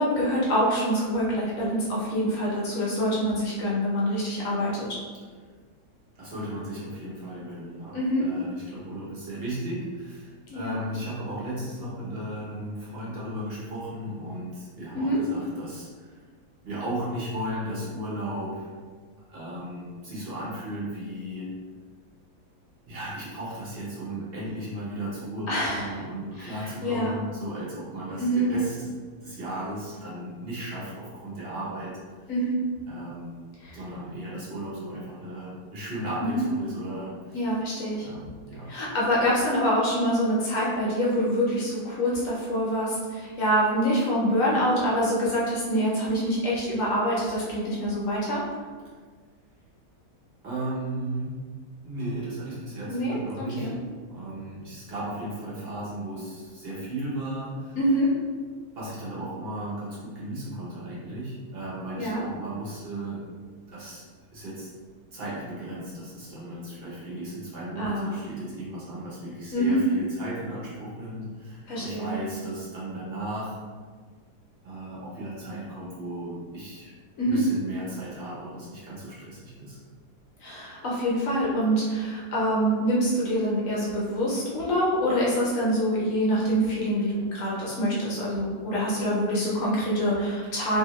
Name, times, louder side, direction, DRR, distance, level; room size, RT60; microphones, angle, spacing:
voice 1, 0.0-5.0 7.9-8.3 10.5-10.8 14.9-15.2 25.5-26.0 26.4-27.2 28.2-28.5 32.3-32.6 33.6-33.8 36.2-36.4 37.3-38.1 38.7-48.4 52.9-53.2 53.6-53.7 57.8-58.1 62.0-62.2 67.8-68.1 69.5-69.8 71.7-72.2 77.2-77.4 80.4-90.8, equal, 60° left, -6 dB, 1.0 m, -25 dB
voice 2, 6.2-16.2 16.6-18.7 19.3-21.5 22.9-28.9 29.2-32.0 32.9-33.4 33.7-37.4 38.0-38.7 50.4-51.5 51.8-53.7 54.1-57.8 58.7-63.3 63.7-64.1 64.3-64.7 65.1-73.6 74.6-76.9 77.2-79.8, right 1 dB, 45° right, -7 dB, 0.8 m, -35 dB
2.7 x 2.5 x 3.0 m, 1.5 s
omnidirectional pair, 1.8 m